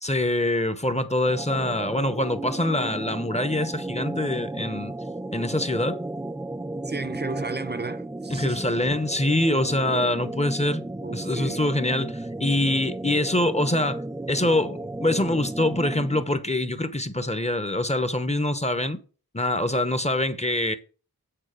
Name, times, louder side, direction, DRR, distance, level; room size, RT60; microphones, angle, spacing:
voice 1, 0.0-4.9 5.3-6.0 8.3-10.8 11.1-14.0 14.3-19.0 19.3-20.7, left 1 dB, 20° left, 0.9 m, -24 dB
sound 1, 1.3-16.4, right 2 dB, 10° right, 0.4 m, -34 dB
voice 2, 6.9-8.6 11.0-11.6, right 3 dB, 25° right, 0.8 m, -33 dB
8.9 x 4.0 x 6.6 m
wide cardioid pair, 60°, 37 cm